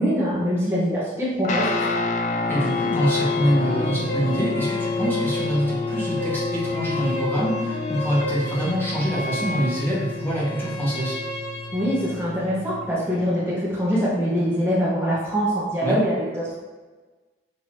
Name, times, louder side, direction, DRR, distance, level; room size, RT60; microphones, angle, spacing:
voice 1, 0.0-2.0 11.7-16.5, equal, 15° right, -8 dB, 0.9 m, -24 dB
Guitar, 1.4-12.9, left 4 dB, 40° left, 0.3 m, -29 dB
sound 1, 2.3-12.3, equal, 65° left, 0.9 m, -32 dB
voice 2, 2.5-11.2 15.8-16.0, equal, 10° left, -7 dB, 1.1 m, -25 dB
6.0 x 2.7 x 3.0 m, 1.3 s
head